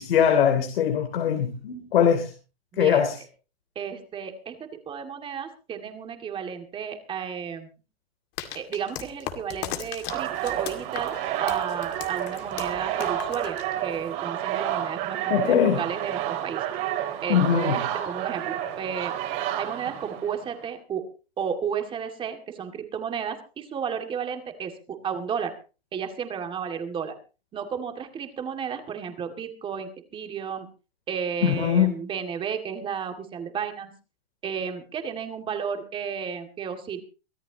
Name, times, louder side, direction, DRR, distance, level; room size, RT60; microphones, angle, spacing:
voice 1, 0.0-2.3 2.8-3.1 15.3-15.8 17.3-17.8 31.4-31.9, left 8 dB, 70° left, 5 dB, 3.2 m, -21 dB
voice 2, 2.7-3.0 3.8-7.7 8.5-16.7 17.2-19.1 19.6-21.1 21.4-25.5 25.9-27.2 27.5-30.7 31.1-33.9 34.4-37.0, right 7 dB, 15° right, 6 dB, 2.2 m, -33 dB
sound 1, 8.4-14.1, left 11 dB, 35° left, 2.2 m, -37 dB
sound 2, 10.1-20.6, right 12 dB, 35° right, 3.4 m, -30 dB
23.5 x 14.0 x 2.9 m, 0.33 s
hypercardioid pair, 150°, 30 cm